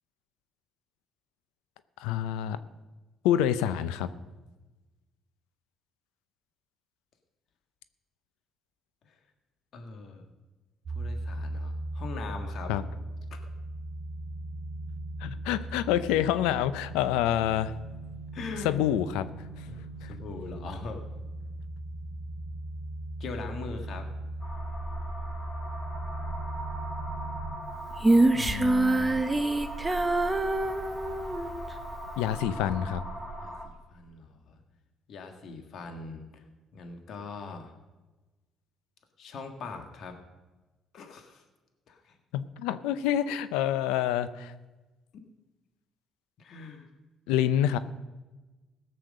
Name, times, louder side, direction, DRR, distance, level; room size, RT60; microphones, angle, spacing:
voice 1, 2.0-2.6 3.2-4.1 12.7-12.8 15.2-17.7 18.6-19.3 19.6-19.7 20.0-20.1 28.3-29.2 32.2-33.0 42.3-44.5 47.3-47.8, left 11 dB, 90° left, 14 dB, 0.6 m, -27 dB
voice 2, 9.7-10.3 10.9-12.7 18.3-18.8 19.7-21.0 23.2-24.1 33.4-34.6 35.1-36.4 36.7-37.8 39.2-40.2 40.9-41.4 41.9-42.2 46.4-46.9, left 4 dB, 65° left, 5 dB, 1.8 m, -41 dB
sound 1, 10.9-27.6, right 1 dB, 45° right, 2.3 m, -38 dB
sound 2, 24.4-33.6, right 1 dB, 40° left, 3.4 m, -39 dB
Female singing, 28.0-31.5, right 2 dB, 15° right, 1.0 m, -25 dB
17.0 x 6.7 x 6.6 m, 1.2 s
supercardioid pair, 75°, 0 cm